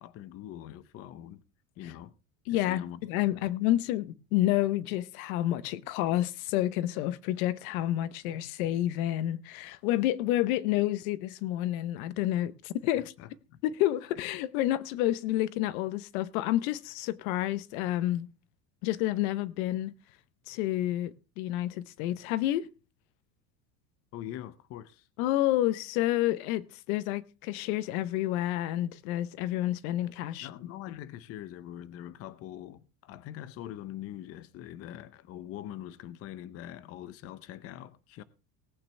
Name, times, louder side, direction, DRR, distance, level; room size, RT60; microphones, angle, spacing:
voice 1, 0.0-1.4 1.8-2.1 2.5-3.0 3.4-3.5 12.9-13.6 24.1-25.1 30.4-38.2, left 12 dB, 35° left, 0.6 m, -43 dB
voice 2, 2.5-13.1 13.6-18.3 18.8-19.9 20.5-22.7 25.2-30.5 30.9-31.0, left 14 dB, 85° left, 0.9 m, -29 dB
18.5 x 8.8 x 3.3 m
cardioid pair, 165°, 41 cm